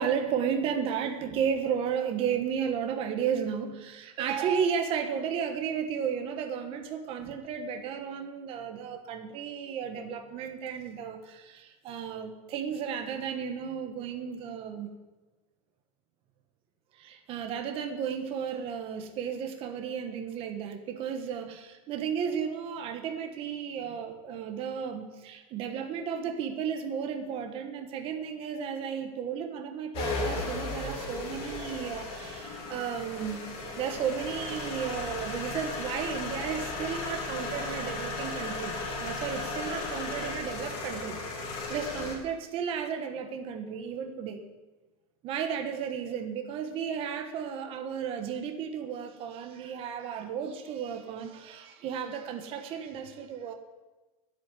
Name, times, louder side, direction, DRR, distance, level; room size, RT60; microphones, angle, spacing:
voice 1, 0.0-14.9 17.0-33.4 33.8-41.2 41.7-44.4 45.2-53.5, right 7 dB, 30° right, 5 dB, 1.2 m, -33 dB
sound 1, 29.9-42.1, left 3 dB, 30° left, 2.8 m, -35 dB
10.5 x 8.4 x 9.7 m, 1.2 s
supercardioid pair, 165°, 18 cm